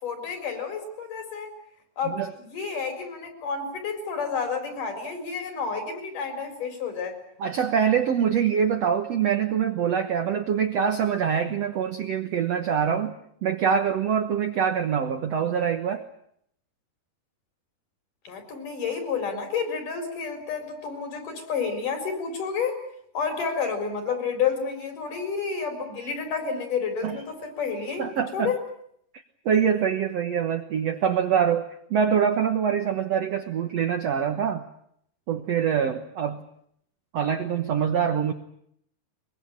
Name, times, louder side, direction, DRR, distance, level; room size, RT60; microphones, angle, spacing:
voice 1, 0.0-1.5 2.0-7.2 18.2-22.8 23.1-28.1 28.3-28.6, left 5 dB, 50° left, 6 dB, 6.0 m, -30 dB
voice 2, 7.4-13.1 13.4-16.0 27.0-27.2 28.0-28.5 29.4-34.7 35.3-36.4 37.1-38.3, right 7 dB, 65° right, 6 dB, 1.7 m, -24 dB
23.5 x 23.0 x 8.7 m, 0.69 s
omnidirectional pair, 4.6 m